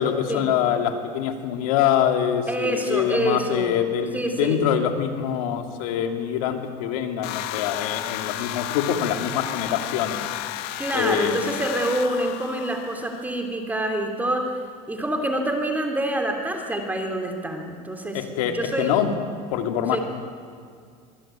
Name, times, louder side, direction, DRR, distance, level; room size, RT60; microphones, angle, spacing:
voice 1, 0.0-11.4 18.1-19.1 19.5-20.0, left 9 dB, 85° left, 5 dB, 3.0 m, -25 dB
voice 2, 2.5-3.8 4.1-4.6 10.8-14.5 14.9-19.0 19.9-20.0, right 1 dB, 10° right, 4 dB, 3.1 m, -26 dB
sound 1, 7.2-13.4, left 14 dB, 65° left, 1.6 m, -32 dB
24.0 x 23.0 x 9.1 m, 2.2 s
supercardioid pair, 120°, 18 cm